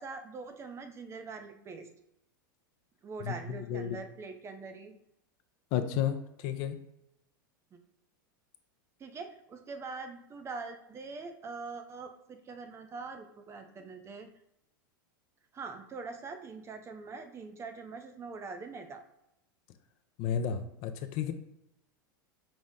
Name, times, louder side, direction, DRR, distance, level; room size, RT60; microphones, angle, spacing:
voice 1, 0.0-1.9 3.0-5.0 7.7-7.8 9.0-14.3 15.5-19.0, right 4 dB, 25° right, 7 dB, 0.4 m, -43 dB
voice 2, 3.2-4.0 5.7-6.8 20.2-21.3, left 9 dB, 50° left, 9 dB, 0.4 m, -32 dB
5.2 x 2.0 x 3.6 m, 0.81 s
hypercardioid pair, 100°, 11 cm